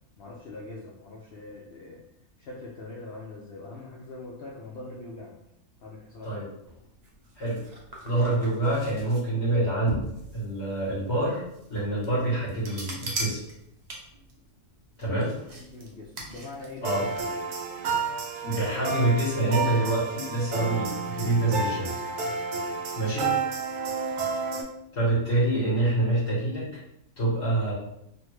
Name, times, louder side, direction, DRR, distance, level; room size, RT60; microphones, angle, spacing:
voice 1, 0.2-2.0 2.4-5.4 5.8-6.5 15.2-17.2 23.1-23.3, left 2 dB, 85° left, -3 dB, 0.5 m, -43 dB
sound 1, 6.6-17.2, right 1 dB, 65° right, 0.4 m, -40 dB
voice 2, 8.0-10.1 10.3-11.4 11.7-13.4 15.0-15.3 16.8-17.0 18.4-21.9 22.9-23.3 24.9-26.8 27.2-27.7, right 2 dB, 50° left, -10 dB, 1.4 m, -26 dB
sound 2, 16.8-24.6, right 5 dB, 85° right, 1.1 m, -31 dB
3.2 x 2.2 x 3.1 m, 0.79 s
omnidirectional pair, 1.6 m